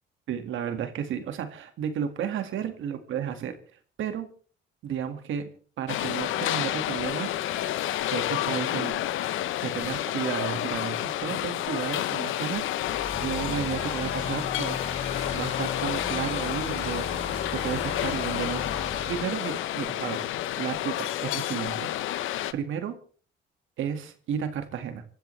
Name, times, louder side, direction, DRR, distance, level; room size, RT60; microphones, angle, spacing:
voice 1, 0.3-3.5 4.0-4.3 4.8-5.5 5.8-7.4 8.1-9.0 9.6-12.8 13.2-14.9 15.3-17.1 17.5-20.3 20.6-21.9 22.1-22.3 22.5-22.9 23.8-25.0, right 8 dB, 80° right, 8 dB, 2.0 m, -33 dB
sound 1, 5.9-22.5, left 13 dB, 80° left, 0.8 m, -30 dB
sound 2, 12.8-19.2, left 3 dB, 30° left, 5.8 m, -37 dB
28.0 x 12.5 x 3.3 m, 0.42 s
cardioid pair, 90°, 20 cm